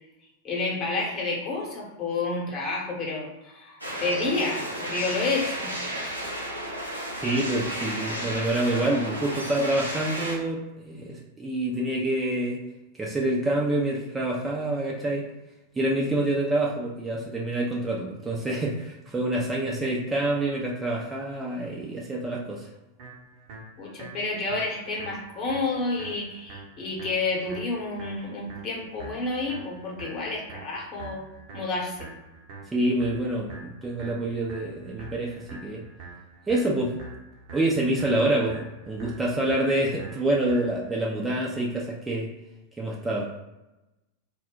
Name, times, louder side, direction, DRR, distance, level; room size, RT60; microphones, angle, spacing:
voice 1, 0.4-5.7 23.8-31.2 31.5-32.1, left 3 dB, 35° left, -3 dB, 0.9 m, -30 dB
sound 1, 3.8-10.4, right 1 dB, 90° left, 0.5 m, -33 dB
voice 2, 7.2-12.6 13.0-15.3 15.7-22.7 32.7-35.8 36.5-36.9 37.5-42.3 42.8-43.3, right 1 dB, 10° right, -3 dB, 0.5 m, -27 dB
sound 2, 23.0-41.0, right 3 dB, 45° right, 0.7 m, -45 dB
2.2 x 2.1 x 3.8 m, 0.99 s
figure-of-eight pair, 90°, 0 cm